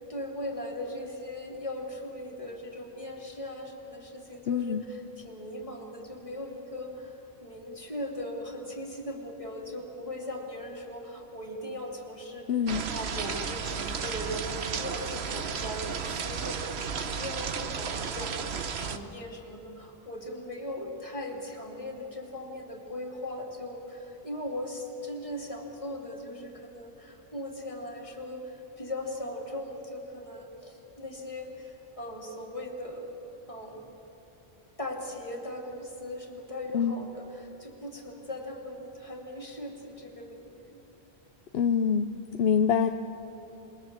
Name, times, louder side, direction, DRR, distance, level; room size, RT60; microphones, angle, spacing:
voice 1, 0.1-12.5 12.9-33.1 33.5-33.8 34.8-40.8, left 1 dB, 30° left, 0 dB, 3.0 m, -39 dB
voice 2, 4.5-4.8 12.5-12.8 36.7-37.0 41.5-42.9, left 7 dB, 70° left, 8 dB, 0.9 m, -25 dB
sound 1, 12.7-19.0, right 6 dB, 85° right, 1.3 m, -33 dB
27.5 x 21.5 x 7.4 m, 3.0 s
omnidirectional pair, 1.1 m